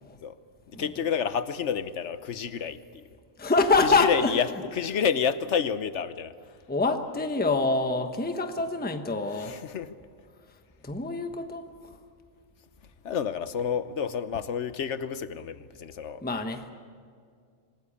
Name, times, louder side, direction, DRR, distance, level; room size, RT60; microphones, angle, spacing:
voice 1, 0.7-3.1 3.8-4.5 4.8-6.3 9.4-9.9 13.0-16.2, left 7 dB, 65° left, 13 dB, 1.2 m, -29 dB
voice 2, 3.4-4.3 6.7-9.6 10.8-12.0 16.2-16.7, left 3 dB, 10° left, 6 dB, 1.0 m, -26 dB
26.0 x 18.5 x 8.7 m, 2.1 s
omnidirectional pair, 1.4 m